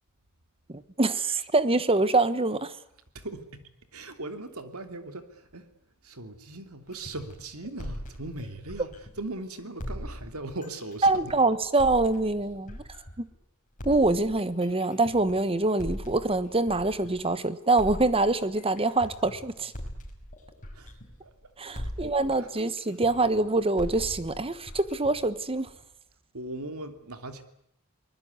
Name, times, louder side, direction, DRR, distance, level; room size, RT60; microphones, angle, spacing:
voice 1, 0.7-2.7 11.0-12.8 13.2-13.3 13.8-19.7 21.6-25.7, right 2 dB, 25° right, 1.2 m, -25 dB
voice 2, 3.1-3.6 3.9-5.7 6.0-8.9 9.2-11.3 20.7-20.9 21.2-22.5 26.3-27.4, right 2 dB, 85° right, 2.7 m, -39 dB
sound 1, 6.9-9.3 9.8-13.3 13.8-17.3 17.8-21.4 21.7-25.8, equal, 35° left, 6.0 m, -41 dB
24.0 x 20.0 x 9.5 m
head